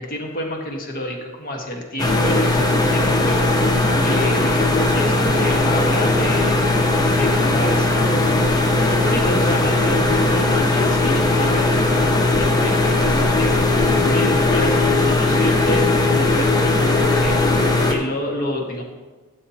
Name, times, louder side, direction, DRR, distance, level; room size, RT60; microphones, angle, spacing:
voice 1, 0.0-3.6 4.0-4.6 4.9-6.6 7.0-8.4 8.8-18.8, left 1 dB, 45° left, 1 dB, 1.4 m, -29 dB
sound 1, 2.0-18.0, left 2 dB, 20° left, 0.8 m, -18 dB
12.5 x 7.3 x 2.8 m, 1.3 s
head